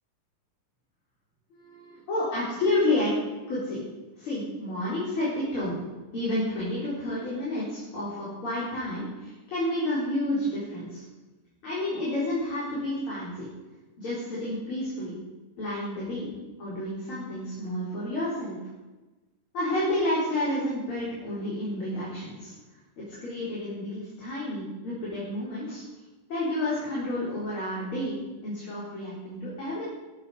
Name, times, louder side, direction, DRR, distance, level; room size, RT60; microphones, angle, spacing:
voice 1, 1.5-3.1 3.5-3.8 4.2-5.8 6.1-11.0 11.6-13.5 14.0-15.1 15.6-16.3 16.6-18.6 19.5-22.5 23.0-25.8 26.3-29.8, left 1 dB, 40° left, -8 dB, 4.8 m, -30 dB
14.5 x 14.0 x 5.0 m, 1.1 s
omnidirectional pair, 3.7 m